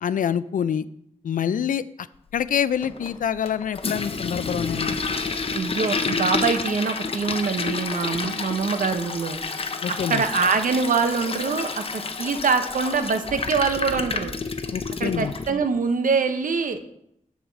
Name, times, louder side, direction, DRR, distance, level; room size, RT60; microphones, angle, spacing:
voice 1, 0.0-0.9 1.2-2.1 2.3-5.0 9.8-10.2 14.7-15.3, left 8 dB, 85° left, 16 dB, 0.4 m, -26 dB
Toilet flush, 2.8-15.5, left 4 dB, 45° left, 0.7 m, -29 dB
voice 2, 5.5-9.4 9.9-14.3 15.0-16.8, right 5 dB, 80° right, 8 dB, 0.8 m, -24 dB
7.1 x 5.0 x 7.0 m, 0.75 s
wide cardioid pair, 120°, 14 cm